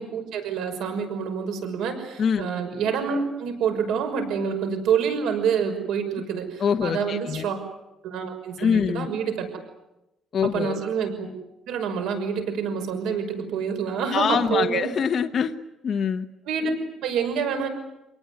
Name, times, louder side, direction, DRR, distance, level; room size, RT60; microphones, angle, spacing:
voice 1, 0.0-7.6 8.0-9.5 10.5-11.3 11.7-14.9 16.5-17.7, right 6 dB, 85° right, 6 dB, 5.9 m, -27 dB
voice 2, 6.6-7.5 8.6-9.1 10.3-10.8 14.1-15.5 15.8-16.3, left 7 dB, 40° left, 4 dB, 1.1 m, -24 dB
28.0 x 19.0 x 9.6 m, 0.94 s
cardioid pair, 140°, 0 cm